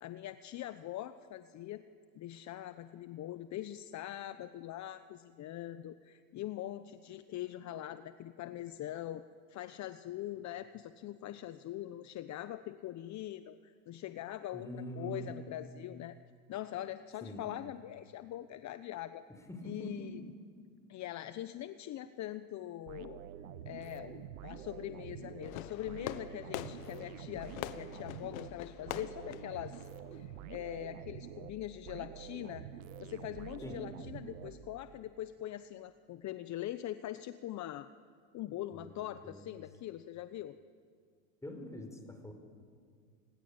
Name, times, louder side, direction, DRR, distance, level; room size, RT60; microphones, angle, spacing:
voice 1, 0.0-1.8 2.1-9.2 9.5-16.2 16.5-19.2 19.6-20.3 20.9-23.2 23.7-32.7 33.0-37.9 38.3-40.6, left 13 dB, 45° left, 12 dB, 1.0 m, -42 dB
voice 2, 14.5-15.3 17.2-17.4 19.5-20.1 33.6-33.9 38.7-38.9 39.2-39.4 41.4-42.3, equal, 5° left, 5 dB, 5.2 m, -44 dB
sound 1, 22.9-35.0, right 9 dB, 85° right, 1.3 m, -48 dB
Fireworks, 25.4-30.5, left 13 dB, 85° left, 1.3 m, -45 dB
28.5 x 20.5 x 8.9 m, 2.1 s
supercardioid pair, 105°, 41 cm